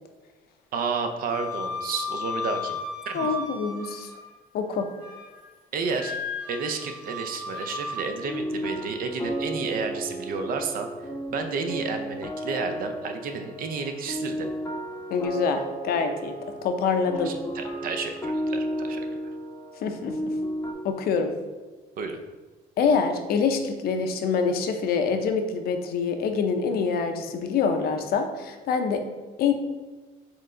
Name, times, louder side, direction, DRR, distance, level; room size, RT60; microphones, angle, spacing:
voice 1, 0.7-2.8 3.1-3.3 5.7-6.1 6.5-14.5 17.2-19.0 22.0-22.2, right 4 dB, 60° right, 6 dB, 0.6 m, -31 dB
Wind instrument woodwind instrument, 1.3-4.3 4.7-5.4 5.9-8.1, left 2 dB, 5° right, 1.1 m, -34 dB
voice 2, 3.1-4.1 4.5-4.9 15.1-17.3 19.8-20.3 20.8-21.3 22.8-29.0 29.4-29.5, left 5 dB, 65° left, 6 dB, 0.6 m, -25 dB
sound 1, 8.3-20.7, equal, 15° left, 0.6 m, -33 dB
4.5 x 3.2 x 3.7 m, 1.3 s
cardioid pair, 110°, 17 cm